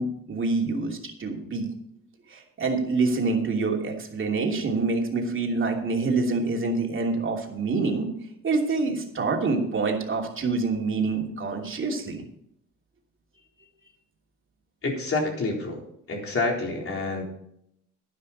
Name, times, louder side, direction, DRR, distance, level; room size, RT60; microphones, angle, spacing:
voice 1, 0.0-1.7 2.3-8.1 8.4-12.2, right 3 dB, 40° right, 1 dB, 2.9 m, -26 dB
voice 2, 14.8-15.8 16.1-17.2, left 3 dB, 45° left, 0 dB, 4.0 m, -28 dB
11.0 x 11.0 x 4.2 m, 0.75 s
cardioid pair, 90°, 30 cm